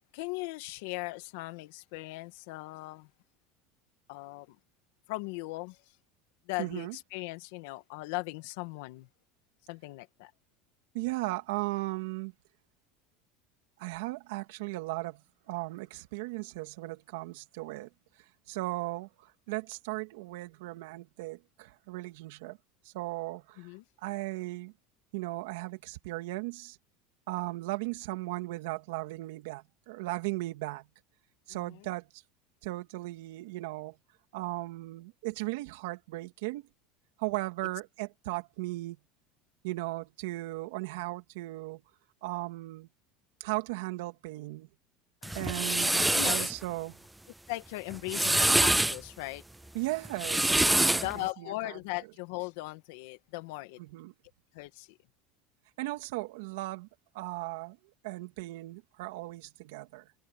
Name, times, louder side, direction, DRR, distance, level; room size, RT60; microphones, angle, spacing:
voice 1, 0.1-3.1 4.1-4.6 5.1-5.8 6.5-9.1 9.7-10.3 23.6-23.8 31.5-31.9 45.2-45.5 46.1-46.5 47.5-49.4 51.0-53.8 54.5-55.0, left 21 dB, 65° left, 2.1 m, -38 dB
voice 2, 6.6-7.0 10.9-12.3 13.8-17.9 18.2-22.6 22.8-23.7 24.0-24.7 25.1-26.8 27.3-30.9 31.5-32.2 32.6-34.0 34.3-36.7 37.2-39.0 39.6-41.8 42.2-42.9 43.4-44.7 45.3-47.0 49.7-51.8 53.8-54.1 55.8-56.9 57.1-57.8 58.0-60.1, right 20 dB, 75° right, 2.5 m, -37 dB
sound 1, 45.2-46.5 47.9-49.0 50.0-51.1, right 1 dB, 5° right, 0.4 m, -25 dB
cardioid pair, 170°, 0 cm